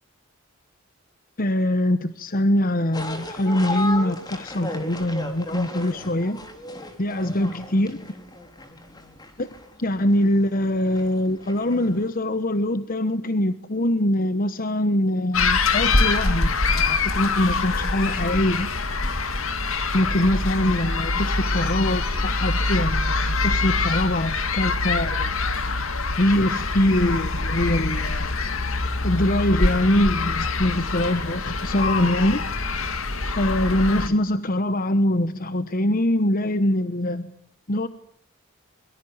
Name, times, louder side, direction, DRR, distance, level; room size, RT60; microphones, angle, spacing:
voice 1, 1.4-6.4 7.0-8.0 9.4-9.5 9.8-18.7 19.9-25.3 26.2-28.3 29.0-32.5 33.4-37.3 37.7-37.9, left 1 dB, 40° left, 12 dB, 1.1 m, -23 dB
sound 1, 2.9-12.1, left 2 dB, 20° left, 3.6 m, -35 dB
sound 2, 15.3-34.1, left 3 dB, 75° left, 2.3 m, -24 dB
24.0 x 23.0 x 8.8 m, 0.68 s
head